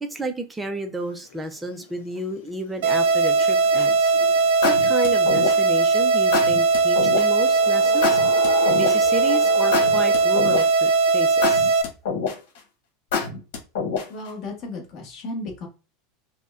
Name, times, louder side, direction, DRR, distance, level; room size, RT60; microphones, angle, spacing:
voice 1, 0.0-4.1 4.6-8.2 8.7-11.7, right 1 dB, 5° right, 0.5 m, -31 dB
sound 1, 1.0-11.3, left 8 dB, 85° left, 0.6 m, -37 dB
sound 2, 2.8-11.8, right 4 dB, 75° right, 0.6 m, -19 dB
sound 3, 3.8-4.1 4.6-5.8 6.3-7.3 8.0-9.2 9.7-10.9 11.4-12.6 13.1-14.3, left 5 dB, 70° left, 1.4 m, -26 dB
voice 2, 14.1-15.7, left 2 dB, 30° left, 1.1 m, -34 dB
5.2 x 2.1 x 2.4 m
supercardioid pair, 175°, 0 cm